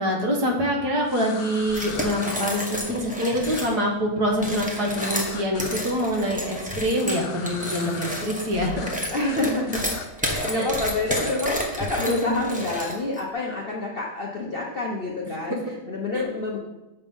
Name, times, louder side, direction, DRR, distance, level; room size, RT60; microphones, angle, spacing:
voice 1, 0.0-8.9 10.5-10.7 12.1-12.4 16.1-16.2, equal, 55° right, 1 dB, 1.8 m, -25 dB
sound 1, 1.1-2.4 3.4-3.7 4.9-5.8 6.9-8.2 8.5-9.0 9.2-9.4 9.7-10.5 11.0-11.3, left 6 dB, 75° left, 1.5 m, -39 dB
sound 2, 1.7-3.7 4.3-13.2, equal, 5° right, 0.7 m, -30 dB
voice 2, 9.1-16.6, left 2 dB, 45° left, -2 dB, 0.7 m, -28 dB
7.0 x 6.6 x 5.4 m, 1.0 s
omnidirectional pair, 2.2 m